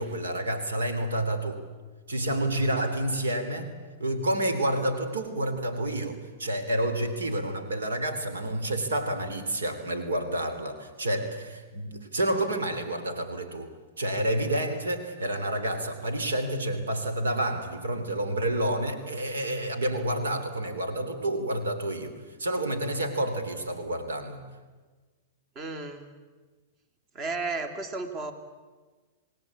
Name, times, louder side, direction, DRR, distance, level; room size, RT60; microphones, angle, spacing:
voice 1, 0.0-1.6 2.1-3.7 4.0-24.4, right 1 dB, 85° right, 8 dB, 3.2 m, -29 dB
voice 2, 25.5-26.1 27.1-28.3, right 3 dB, 35° right, 8 dB, 2.8 m, -33 dB
28.0 x 19.0 x 8.5 m, 1.4 s
hypercardioid pair, 115°, 0 cm